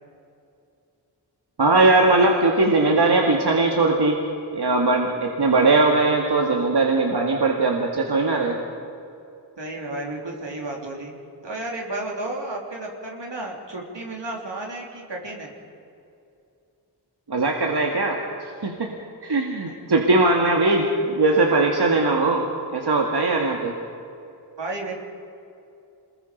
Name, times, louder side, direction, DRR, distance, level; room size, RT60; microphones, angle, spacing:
voice 1, 1.6-4.2 4.5-8.6 17.3-18.9 19.2-23.7, right 2 dB, 70° right, 1 dB, 2.0 m, -20 dB
voice 2, 9.6-11.1 11.4-15.5 19.7-19.8 24.6-25.0, right 2 dB, 90° right, -1 dB, 3.6 m, -32 dB
27.0 x 21.0 x 5.3 m, 2.6 s
wide cardioid pair, 70°, 41 cm